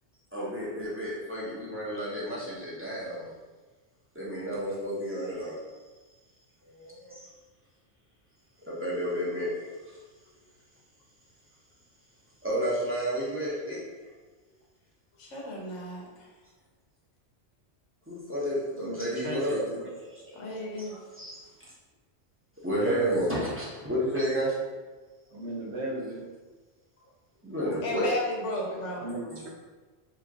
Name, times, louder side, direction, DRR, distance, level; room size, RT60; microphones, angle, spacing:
voice 1, 0.3-3.3 4.1-5.6 6.6-7.1 8.7-10.0 12.4-13.8 18.1-21.7 22.6-24.5 27.4-28.1 28.8-29.4, equal, 15° right, -8 dB, 0.6 m, -31 dB
voice 2, 15.2-16.3 20.3-21.0 27.8-29.1, left 1 dB, 85° left, -2 dB, 1.1 m, -34 dB
voice 3, 18.7-19.9 22.7-23.2 25.3-26.2 29.0-29.5, right 1 dB, 65° right, -2 dB, 0.9 m, -36 dB
2.9 x 2.4 x 3.5 m, 1.3 s
omnidirectional pair, 1.2 m